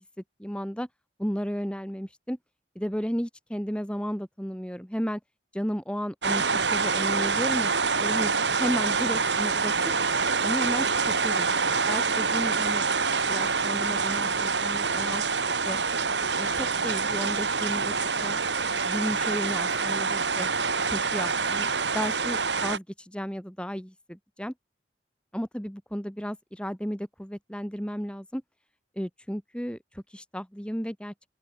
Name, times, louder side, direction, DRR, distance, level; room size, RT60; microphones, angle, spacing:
voice 1, 0.4-0.9 1.2-2.4 2.8-5.2 5.5-6.4 6.7-7.7 8.0-8.3 8.6-9.9 10.4-10.9 11.2-11.5 11.9-12.9 13.3-15.2 15.7-15.8 16.4-17.9 18.2-18.4 18.8-20.5 20.9-21.7 21.9-24.5 25.3-28.4 29.0-31.1, equal, 5° left, 3.6 m, -33 dB
Rain - heavy getting lighter, 6.2-22.8, right 4 dB, 85° right, 4.7 m, -26 dB
open air
head